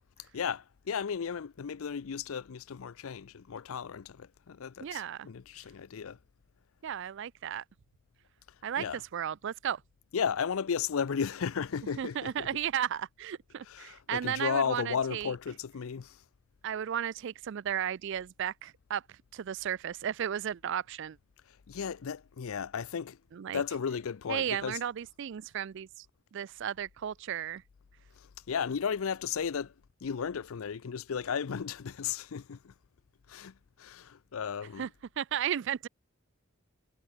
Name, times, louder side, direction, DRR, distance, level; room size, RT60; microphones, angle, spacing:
voice 1, 0.3-6.2 8.8-9.0 10.1-12.6 13.6-16.2 21.5-23.2 23.5-24.8 28.2-29.7 30.0-32.7 33.3-34.9, left 6 dB, 70° left, 0.5 m, -34 dB
voice 2, 4.8-5.3 6.8-7.6 8.6-9.8 12.0-15.3 16.6-21.2 23.3-23.6 24.3-26.1 26.3-27.6 34.8-34.9 35.2-35.9, right 9 dB, 55° right, 0.3 m, -34 dB
head